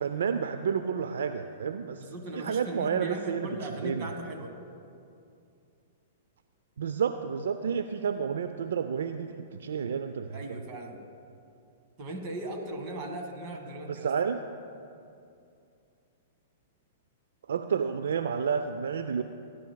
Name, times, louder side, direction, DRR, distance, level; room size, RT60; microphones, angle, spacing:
voice 1, 0.0-2.1 2.3-3.5 3.8-4.1 6.8-10.4 13.9-14.4 17.5-19.2, right 7 dB, 75° right, 9 dB, 0.4 m, -30 dB
voice 2, 2.0-4.6 10.3-11.0 12.0-14.1, right 1 dB, 40° right, 4 dB, 1.7 m, -38 dB
19.0 x 10.5 x 2.3 m, 2.5 s
hypercardioid pair, 115°, 0 cm